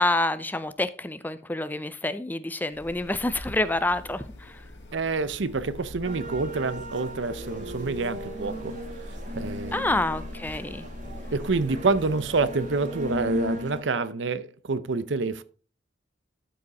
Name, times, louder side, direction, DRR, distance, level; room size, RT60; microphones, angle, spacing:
voice 1, 0.0-4.6 9.7-10.9, left 2 dB, 10° left, 0.5 m, -27 dB
sound 1, 2.7-12.5, left 1 dB, 70° left, 1.8 m, -43 dB
voice 2, 4.9-8.8 9.3-9.9 11.3-15.4, right 3 dB, 80° right, 0.7 m, -27 dB
sound 2, 6.0-13.8, left 1 dB, 45° right, 2.3 m, -37 dB
12.5 x 5.1 x 4.1 m
head